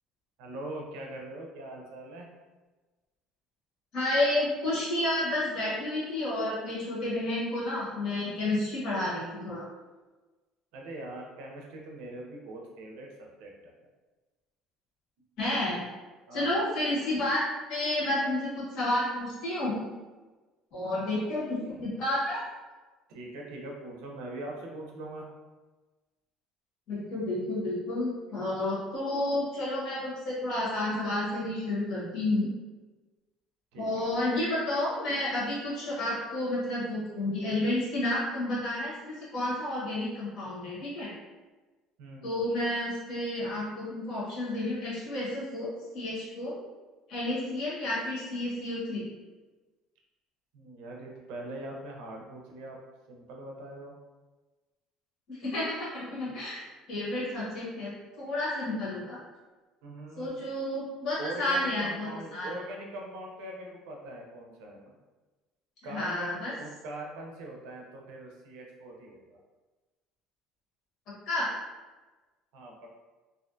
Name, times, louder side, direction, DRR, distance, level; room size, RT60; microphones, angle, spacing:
voice 1, 0.4-2.3 10.7-13.7 16.3-16.5 21.0-21.3 21.6-21.8 23.1-25.3 33.7-34.1 42.0-42.5 50.5-52.8 53.1-53.9 59.8-60.3 61.2-64.8 65.8-69.4 72.5-72.9, right 1 dB, 75° right, 0 dB, 0.5 m, -42 dB
voice 2, 3.9-9.6 15.4-15.8 16.3-17.4 17.7-19.8 20.7-22.4 26.9-32.5 33.8-41.1 42.2-46.5 47.1-49.0 55.3-57.9 58.2-59.2 60.2-62.5 65.8-66.5 71.3-71.5, left 1 dB, 50° left, -8 dB, 0.9 m, -31 dB
2.4 x 2.2 x 2.5 m, 1.2 s
cardioid pair, 170°, 0 cm